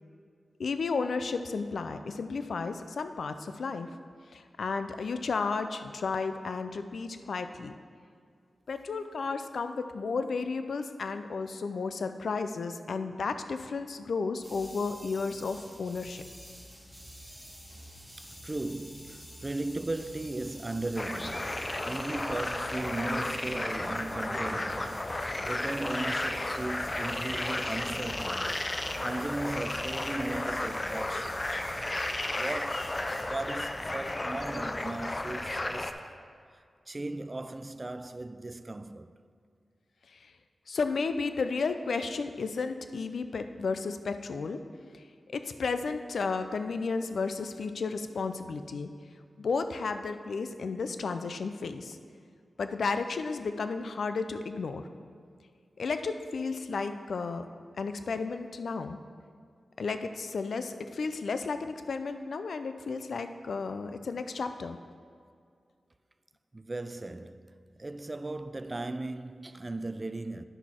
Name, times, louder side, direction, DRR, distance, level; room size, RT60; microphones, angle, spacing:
voice 1, 0.6-3.9 4.3-7.7 8.7-16.2 40.1-40.3 40.7-44.6 44.9-45.0 45.3-48.9 49.4-52.0 52.6-54.9 55.8-57.4 57.8-59.0 59.8-64.8, left 4 dB, 80° left, 0.4 m, -33 dB
sound 1, 14.4-33.2, equal, 15° left, 2.4 m, -49 dB
voice 2, 18.2-31.5 32.3-36.1 36.9-39.2 66.5-70.4, right 2 dB, 30° right, 0.4 m, -37 dB
sound 2, 21.0-35.9, left 1 dB, 30° left, 0.6 m, -33 dB
10.0 x 6.2 x 4.4 m
cardioid pair, 60°, 0 cm